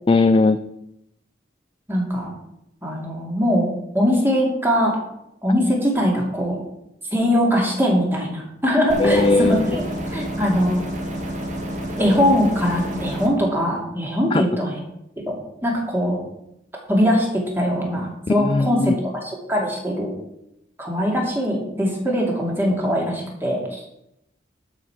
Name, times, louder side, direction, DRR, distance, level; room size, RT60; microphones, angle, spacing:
voice 1, 0.1-0.6 9.0-9.8 14.3-14.4 18.3-18.9, left 3 dB, 25° left, 9 dB, 0.3 m, -18 dB
voice 2, 1.9-2.3 2.8-5.0 5.4-6.6 7.1-10.8 12.0-14.8 15.3-16.2 16.9-17.3 17.5-18.9 19.2-20.1 20.8-23.9, equal, 10° right, -1 dB, 2.4 m, -21 dB
sound 1, 8.9-13.3, right 1 dB, 40° right, 1.8 m, -29 dB
12.5 x 5.2 x 5.9 m, 0.83 s
head